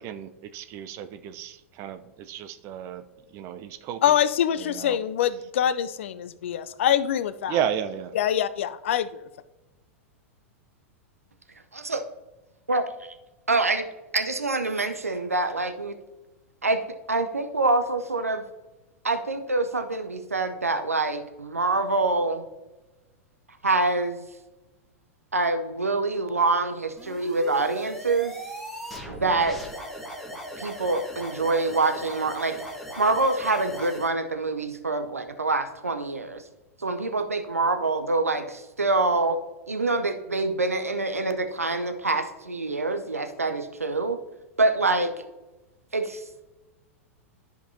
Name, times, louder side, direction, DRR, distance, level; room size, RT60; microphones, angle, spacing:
voice 1, 0.0-3.0 3.3-4.0 4.6-5.0 7.5-8.1, right 9 dB, 35° right, 10 dB, 0.6 m, -33 dB
voice 2, 4.0-7.6 8.1-9.3, left 10 dB, 60° left, 13 dB, 0.4 m, -24 dB
voice 3, 12.7-13.1 13.5-13.8 14.1-16.0 16.6-16.8 17.1-18.4 19.0-22.4 23.6-24.2 25.3-28.3 29.1-29.6 30.6-32.6 33.0-36.4 36.8-39.4 39.7-44.2 44.6-45.1 45.9-46.2, right 3 dB, 85° right, 7 dB, 0.7 m, -25 dB
sound 1, 27.0-34.1, equal, ahead, 1.6 m, -38 dB
13.5 x 5.2 x 2.7 m, 1.1 s
figure-of-eight pair, 95°, 8 cm